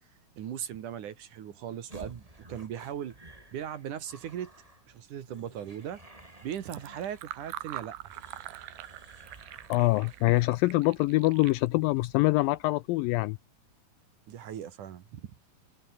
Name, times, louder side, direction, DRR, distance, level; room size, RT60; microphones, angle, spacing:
voice 1, 0.4-3.2 3.5-4.5 4.9-6.0 6.4-8.0 14.3-15.3, right 9 dB, 60° right, 2.9 m, -38 dB
sound 1, 1.9-10.6, right 1 dB, 10° right, 2.9 m, -53 dB
Fill (with liquid), 6.4-12.6, right 15 dB, 75° right, 2.8 m, -45 dB
voice 2, 9.7-13.4, left 20 dB, 80° left, 2.1 m, -25 dB
omnidirectional pair, 4.4 m